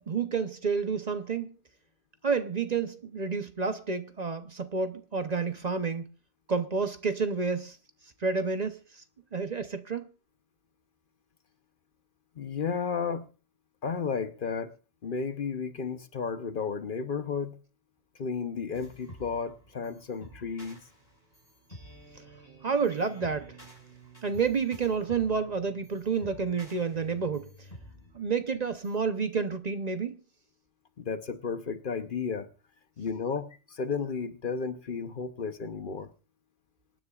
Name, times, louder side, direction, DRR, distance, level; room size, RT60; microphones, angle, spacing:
voice 1, 0.0-1.5 2.2-6.1 6.5-7.8 8.2-8.8 9.3-10.1 22.6-23.5 24.2-27.5 28.1-30.2, right 5 dB, 40° right, 0.9 m, -29 dB
voice 2, 12.4-13.3 13.8-14.8 15.0-17.6 18.2-20.8 31.0-32.5 33.0-36.1, left 5 dB, 55° left, 1.0 m, -33 dB
sound 1, 18.7-29.0, right 1 dB, 35° left, 5.5 m, -51 dB
26.0 x 9.8 x 2.4 m
omnidirectional pair, 1.1 m